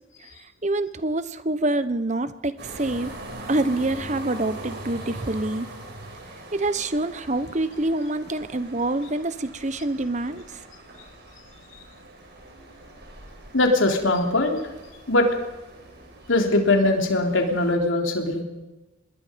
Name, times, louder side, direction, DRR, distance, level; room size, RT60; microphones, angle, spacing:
voice 1, 0.6-3.1 3.5-5.7 6.5-10.4, right 2 dB, 35° right, 13 dB, 1.1 m, -26 dB
sound 1, 2.6-17.7, right 2 dB, 55° right, 5.8 m, -42 dB
voice 2, 13.5-14.6 15.1-15.3 16.3-18.4, left 2 dB, 80° left, 3 dB, 3.5 m, -21 dB
26.0 x 21.0 x 5.3 m, 1.1 s
head